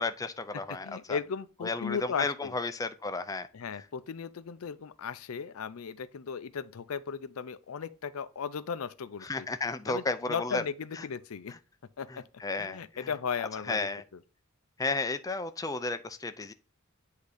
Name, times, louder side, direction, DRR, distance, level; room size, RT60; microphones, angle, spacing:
voice 1, 0.0-1.2 1.6-3.5 9.2-10.6 11.0-11.1 12.1-13.1 13.7-14.0 14.8-16.5, left 3 dB, 15° left, 0.4 m, -33 dB
voice 2, 0.5-2.5 3.5-9.5 9.9-11.6 12.0-12.2 12.6-14.2, left 6 dB, 85° left, 0.5 m, -36 dB
8.2 x 2.8 x 4.9 m
head